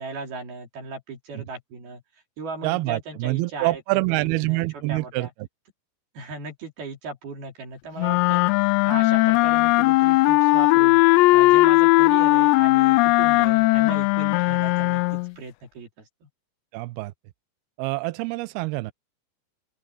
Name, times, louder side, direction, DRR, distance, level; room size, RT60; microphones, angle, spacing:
voice 1, 0.0-2.0 2.4-3.8 4.1-5.3 6.1-16.3, right 3 dB, 60° right, 5.0 m, -37 dB
voice 2, 2.6-5.3 16.7-17.1 17.8-18.9, right 22 dB, 90° right, 2.3 m, -26 dB
sound 1, 8.0-15.3, left 21 dB, 80° left, 2.7 m, -18 dB
open air
omnidirectional pair, 5.2 m